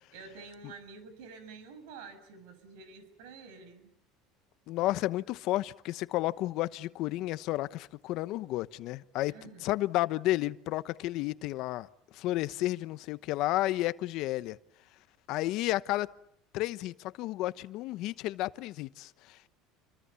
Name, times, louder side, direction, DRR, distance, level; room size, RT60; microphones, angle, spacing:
voice 1, 0.1-3.9 9.3-9.7, right 4 dB, 80° right, 6.7 m, -49 dB
voice 2, 4.7-9.3 9.6-11.9 12.1-14.6 15.3-16.1 16.5-19.5, left 16 dB, 60° left, 1.0 m, -32 dB
29.0 x 24.5 x 7.1 m
supercardioid pair, 125°, 0 cm